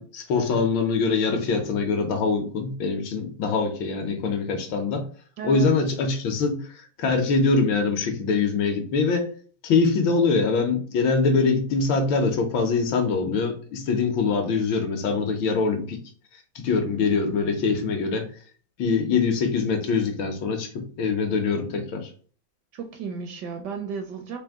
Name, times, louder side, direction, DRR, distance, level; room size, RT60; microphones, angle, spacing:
voice 1, 0.0-5.0 5.4-9.3 9.6-16.0 16.5-18.3 18.8-22.1, left 4 dB, 75° left, 1.5 m, -23 dB
voice 2, 5.4-5.7 22.7-24.4, right 6 dB, 70° right, 1.0 m, -34 dB
3.9 x 2.6 x 3.5 m
omnidirectional pair, 2.2 m